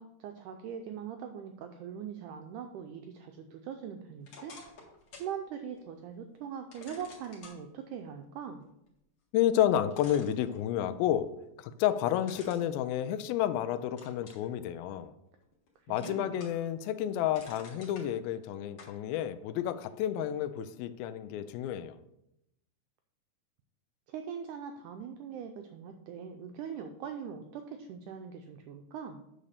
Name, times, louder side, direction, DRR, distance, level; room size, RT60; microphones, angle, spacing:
voice 1, 0.0-4.5 5.2-8.6 15.8-16.3 24.1-29.2, right 7 dB, 90° right, 6 dB, 1.8 m, -41 dB
sound 1, 4.2-5.3 5.8-5.9 6.7-7.6 9.4-9.5 9.9-11.0 12.2-13.5 14.0-14.5 15.0-15.7 16.0-16.7 17.0-18.1 18.8-19.0, left 3 dB, 50° left, 2.4 m, -51 dB
voice 2, 9.3-11.3 11.6-15.1 15.9-22.0, left 11 dB, 85° left, 12 dB, 2.4 m, -30 dB
8.8 x 4.1 x 6.6 m, 0.84 s
omnidirectional pair, 4.2 m